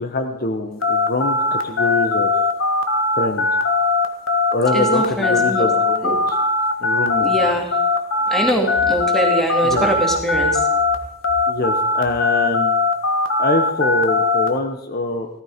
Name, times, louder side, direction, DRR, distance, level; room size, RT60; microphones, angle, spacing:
voice 1, 0.0-2.3 3.2-3.5 4.5-6.1 6.8-7.3 9.6-9.9 11.5-12.8 13.4-15.3, left 2 dB, 45° left, 6 dB, 1.0 m, -23 dB
sound 1, 0.8-11.0 11.2-14.5, left 3 dB, 75° left, 1.6 m, -19 dB
voice 2, 4.7-5.7 6.0-6.2 7.2-7.8 8.3-10.6, right 1 dB, ahead, 1 dB, 2.5 m, -22 dB
15.5 x 14.0 x 5.1 m, 0.76 s
head